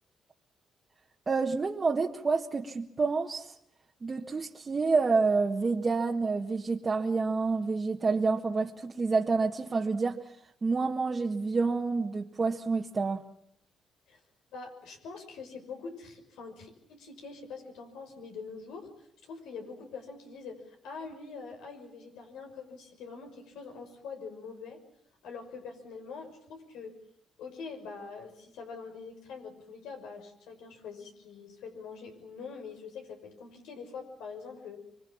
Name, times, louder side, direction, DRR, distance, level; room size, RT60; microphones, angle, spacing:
voice 1, 1.3-3.5 4.0-10.2 10.6-13.2, right 4 dB, 30° right, 0 dB, 1.6 m, -28 dB
voice 2, 14.5-24.8 25.2-26.9 27.4-34.8, left 5 dB, 90° left, 4 dB, 6.0 m, -44 dB
24.5 x 24.0 x 7.2 m, 0.69 s
cardioid pair, 90°, 0 cm